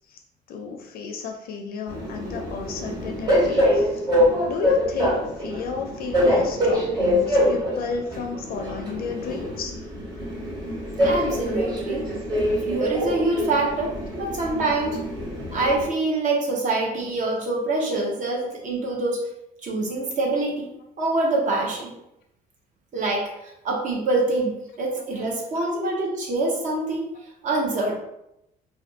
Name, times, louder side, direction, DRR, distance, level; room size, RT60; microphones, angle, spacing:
voice 1, 0.5-4.1 4.5-9.7 13.6-13.7 25.6-25.7, left 6 dB, 60° left, 2 dB, 0.4 m, -31 dB
Train, 1.9-15.8, equal, 25° right, 1.3 m, -25 dB
voice 2, 11.0-12.1 12.6-15.0 15.5-19.2 19.6-20.7 21.0-21.9 22.9-27.1 27.4-28.0, right 2 dB, 50° right, -2 dB, 0.7 m, -25 dB
2.5 x 2.3 x 2.6 m, 0.84 s
cardioid pair, 110°, 17 cm